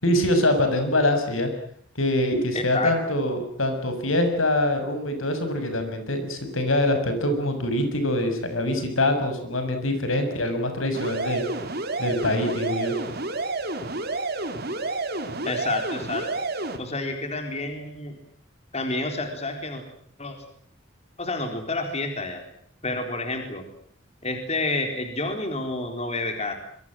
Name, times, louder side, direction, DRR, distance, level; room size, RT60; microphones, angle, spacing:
voice 1, 0.0-1.5 1.9-11.4 12.0-12.9, left 1 dB, 85° left, 7 dB, 6.7 m, -24 dB
voice 2, 2.5-2.9 15.4-16.3 16.8-18.1 18.7-19.8 20.2-20.4 21.2-22.4 22.8-23.6 24.2-26.6, left 2 dB, 30° left, 5 dB, 4.1 m, -29 dB
sound 1, 10.9-16.8, right 2 dB, 50° right, 3.8 m, -30 dB
26.5 x 23.0 x 7.7 m, 0.64 s
head